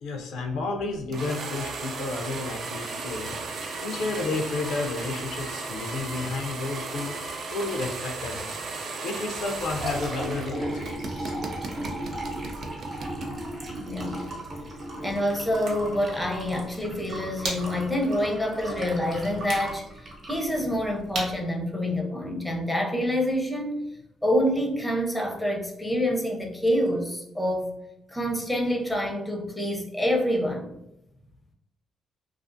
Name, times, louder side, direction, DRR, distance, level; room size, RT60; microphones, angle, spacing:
voice 1, 0.0-7.2 7.5-8.6 9.0-11.3, left 3 dB, 80° left, 3 dB, 0.4 m, -32 dB
sound 1, 1.1-10.5 10.8-13.3, right 3 dB, 60° right, 0.4 m, -35 dB
Liquid, 9.4-21.3, right 1 dB, 45° right, 0.9 m, -36 dB
voice 2, 13.7-14.2 15.0-19.9 20.3-23.9 24.2-27.7 28.1-30.7, equal, 5° left, 0 dB, 0.5 m, -27 dB
sound 2, 15.4-22.8, right 2 dB, 80° right, 0.8 m, -41 dB
2.4 x 2.3 x 2.5 m, 0.86 s
cardioid pair, 90°, 0 cm